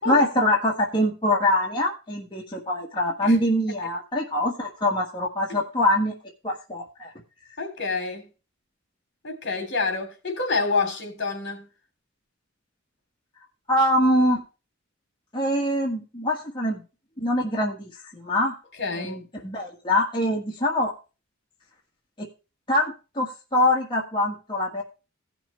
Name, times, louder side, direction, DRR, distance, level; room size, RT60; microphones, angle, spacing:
voice 1, 0.0-6.1 6.4-7.1 13.7-14.4 15.3-16.8 17.2-18.6 19.0-20.9 22.2-22.3 22.7-24.8, left 1 dB, 25° left, 1.5 m, -24 dB
voice 2, 7.6-8.3 9.2-11.7 18.8-19.2, left 4 dB, 60° left, 3.2 m, -27 dB
16.5 x 6.0 x 3.2 m
head